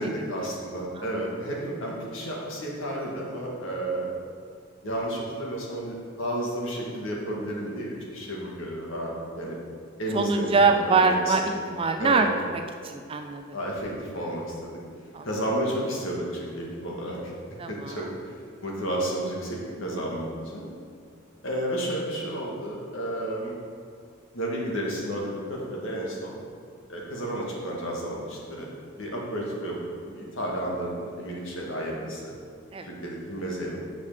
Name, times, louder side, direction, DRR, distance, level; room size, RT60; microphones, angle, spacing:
voice 1, 0.0-4.1 4.8-9.6 10.0-11.6 12.0-12.3 13.5-14.8 15.2-17.3 17.7-20.3 20.5-20.7 21.4-23.5 24.3-26.4 26.9-28.7 29.0-29.8 30.1-32.3 32.8-33.8, right 1 dB, 65° left, -3 dB, 1.7 m, -32 dB
voice 2, 10.1-12.3 12.5-13.4 15.1-15.2 17.6-18.1 32.7-32.9, right 4 dB, 25° right, 5 dB, 0.3 m, -24 dB
6.6 x 5.3 x 6.6 m, 2.2 s
head